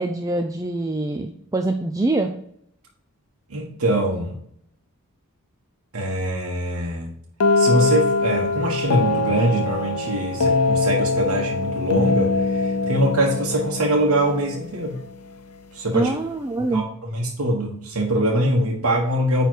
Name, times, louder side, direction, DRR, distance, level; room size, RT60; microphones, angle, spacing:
voice 1, 0.0-2.3 15.9-16.8, right 2 dB, 15° right, 4 dB, 0.4 m, -24 dB
voice 2, 3.5-4.4 5.9-7.1 7.6-15.0 15.7-16.1 16.7-19.5, right 1 dB, 75° right, -2 dB, 1.3 m, -23 dB
sound 1, 7.4-15.1, left 3 dB, 90° left, 0.6 m, -23 dB
9.2 x 3.3 x 4.5 m, 0.68 s
head